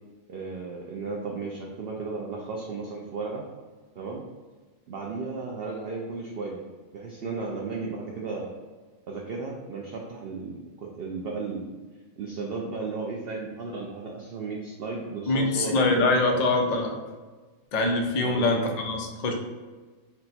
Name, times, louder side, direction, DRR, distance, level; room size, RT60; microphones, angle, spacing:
voice 1, 0.3-3.5 4.0-4.2 4.9-6.6 6.9-8.6 9.1-11.7 12.2-16.4 18.2-18.5, right 4 dB, 65° right, -1 dB, 0.6 m, -34 dB
voice 2, 15.3-17.0 17.7-19.3, left 2 dB, 85° left, 1 dB, 0.3 m, -24 dB
4.2 x 2.1 x 4.1 m, 1.4 s
omnidirectional pair, 1.5 m